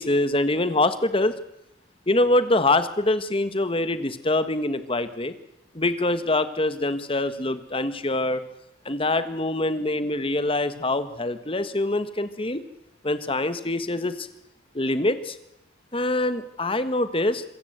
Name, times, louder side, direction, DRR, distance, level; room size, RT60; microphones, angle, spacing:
voice 1, 0.0-1.4 2.1-5.3 5.7-8.4 8.8-12.6 13.0-14.3 14.7-15.4 15.9-17.4, left 2 dB, 30° left, 12 dB, 1.4 m, -24 dB
27.0 x 15.5 x 8.0 m, 0.79 s
head